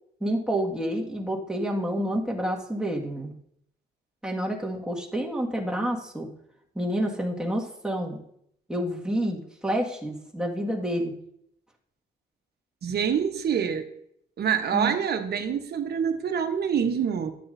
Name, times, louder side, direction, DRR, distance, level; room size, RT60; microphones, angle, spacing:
voice 1, 0.2-3.3 4.2-6.3 6.8-8.2 8.7-11.1 14.7-14.9, equal, 5° right, -1 dB, 1.9 m, -28 dB
voice 2, 12.8-13.9 14.4-17.3, right 7 dB, 55° right, 6 dB, 1.1 m, -26 dB
12.0 x 9.3 x 2.7 m, 0.72 s
cardioid pair, 90°, 20 cm